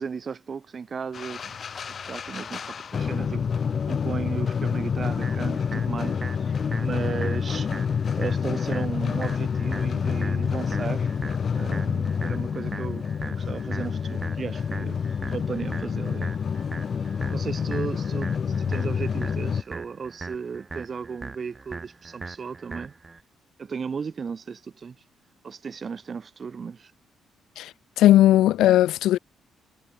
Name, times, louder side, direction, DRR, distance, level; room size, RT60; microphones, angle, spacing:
voice 1, 0.0-1.6 2.1-11.1 11.5-15.0 15.3-16.3 17.3-22.9 23.6-25.0 25.4-26.9, right 6 dB, 40° right, 4.4 m, -35 dB
sound 1, 1.1-19.6, left 6 dB, 45° left, 3.8 m, -28 dB
sound 2, 5.2-23.2, right 3 dB, 25° right, 3.4 m, -40 dB
voice 2, 28.0-29.2, left 13 dB, 85° left, 0.6 m, -17 dB
cardioid pair, 90°, 0 cm